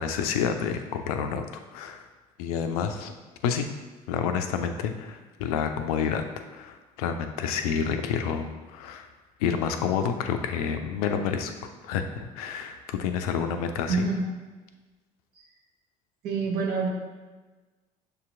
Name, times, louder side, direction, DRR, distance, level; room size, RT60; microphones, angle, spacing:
voice 1, 0.0-1.4 1.7-2.1 2.4-3.1 3.4-3.7 4.1-6.2 6.5-9.1 9.4-11.5 11.8-14.1, left 7 dB, 75° left, 7 dB, 0.4 m, -29 dB
voice 2, 13.9-14.3 15.3-15.5 16.2-16.9, right 4 dB, 60° right, -1 dB, 1.0 m, -27 dB
6.5 x 2.8 x 2.5 m, 1.3 s
hypercardioid pair, 55°, 19 cm